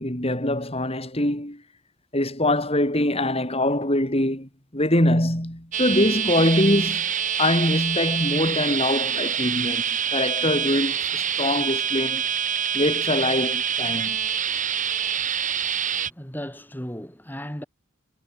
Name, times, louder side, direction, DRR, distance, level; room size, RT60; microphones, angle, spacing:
voice 1, 0.0-1.6 2.1-7.1 7.4-12.2 12.7-14.3, left 1 dB, 30° left, 7.1 m, -23 dB
sound 1, 5.7-16.1, right 8 dB, 40° right, 3.9 m, -26 dB
voice 2, 16.0-17.6, equal, 10° left, 6.1 m, -35 dB
head